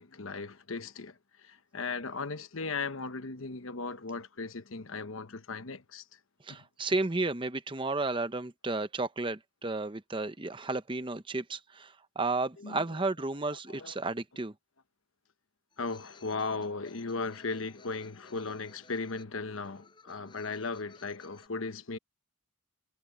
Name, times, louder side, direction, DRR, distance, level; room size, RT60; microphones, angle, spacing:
voice 1, 0.0-6.2 6.5-6.6 12.6-12.8 13.7-14.0 15.8-22.0, left 4 dB, 70° left, 1.1 m, -37 dB
voice 2, 6.4-14.5, right 3 dB, 25° right, 0.8 m, -33 dB
sound 1, 15.7-21.5, left 4 dB, 20° left, 6.6 m, -59 dB
head